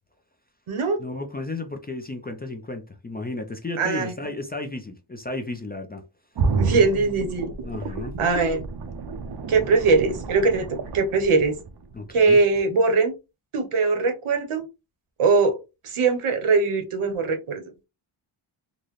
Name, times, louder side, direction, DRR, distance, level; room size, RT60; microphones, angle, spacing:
voice 1, 1.0-6.0 7.6-8.1 11.9-12.4, left 2 dB, 20° left, 0.4 m, -33 dB
voice 2, 3.8-4.1 6.6-7.5 8.2-8.6 9.5-10.7 10.9-11.6 12.1-13.1 13.5-14.6 15.2-15.6 15.8-17.6, right 4 dB, 85° right, 1.0 m, -21 dB
sound 1, 6.4-12.2 12.6-12.7, right 4 dB, 55° right, 0.5 m, -30 dB
3.8 x 2.1 x 3.1 m
wide cardioid pair, 175°, 49 cm